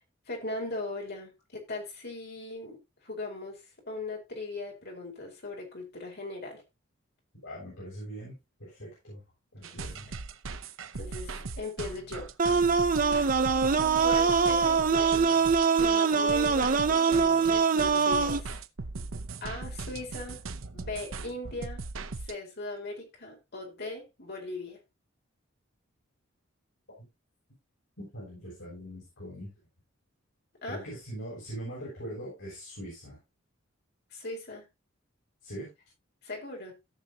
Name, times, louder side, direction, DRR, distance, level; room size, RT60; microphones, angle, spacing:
voice 1, 0.3-2.8 3.0-6.6 9.6-9.9 10.9-12.3 14.0-15.4 15.7-18.6 19.4-20.4 20.7-21.8 22.2-24.8 30.6-30.9 34.1-34.6 36.2-36.7, left 2 dB, 55° left, 4.5 m, -39 dB
voice 2, 7.4-9.2 9.5-10.1 13.2-13.3 27.0-27.1 28.0-29.5 30.7-33.2 35.4-35.7, right 1 dB, 75° left, 7.3 m, -42 dB
sound 1, 9.6-22.3, right 3 dB, 75° right, 0.8 m, -39 dB
sound 2, 12.4-18.4, right 5 dB, 40° right, 0.7 m, -23 dB
17.0 x 6.3 x 2.9 m
head